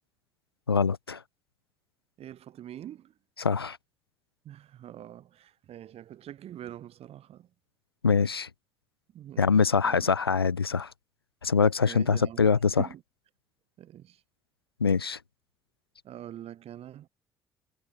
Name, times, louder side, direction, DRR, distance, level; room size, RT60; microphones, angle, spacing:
voice 1, 0.7-1.2 3.4-3.8 8.0-8.5 9.4-10.9 11.4-12.8 14.8-15.2, left 5 dB, 90° left, 0.4 m, -24 dB
voice 2, 2.2-3.1 4.4-7.5 9.1-10.1 11.4-11.5 11.8-13.0 13.8-14.2 16.0-17.1, right 11 dB, 55° right, 6.2 m, -44 dB
figure-of-eight pair, 45°, 12 cm